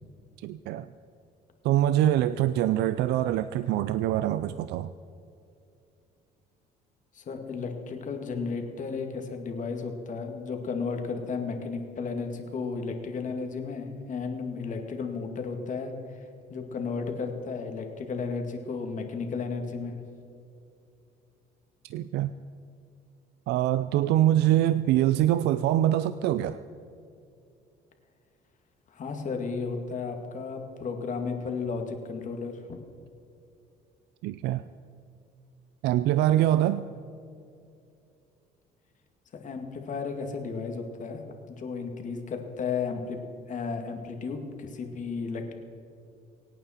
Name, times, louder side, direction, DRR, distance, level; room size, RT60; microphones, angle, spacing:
voice 1, 0.4-0.9 1.6-4.9 21.8-22.3 23.5-26.6 34.2-34.6 35.8-36.9, right 13 dB, 80° right, 14 dB, 0.5 m, -24 dB
voice 2, 7.1-16.2 16.5-20.0 28.9-32.8 39.4-41.2 41.5-43.2 43.5-45.5, left 4 dB, 50° left, 4 dB, 2.1 m, -33 dB
24.5 x 9.1 x 4.4 m, 2.6 s
cardioid pair, 110°, 17 cm